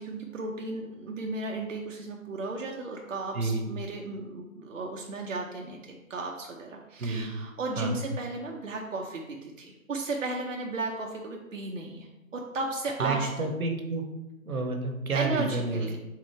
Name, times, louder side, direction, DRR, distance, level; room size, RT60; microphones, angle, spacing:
voice 1, 0.0-13.5 15.1-16.0, right 3 dB, 65° right, 0 dB, 0.7 m, -35 dB
voice 2, 3.3-3.7 7.0-7.4 7.8-8.0 13.0-14.0 14.4-15.9, right 3 dB, 85° right, 4 dB, 1.0 m, -30 dB
3.7 x 3.2 x 4.3 m, 1.0 s
hypercardioid pair, 170°, 42 cm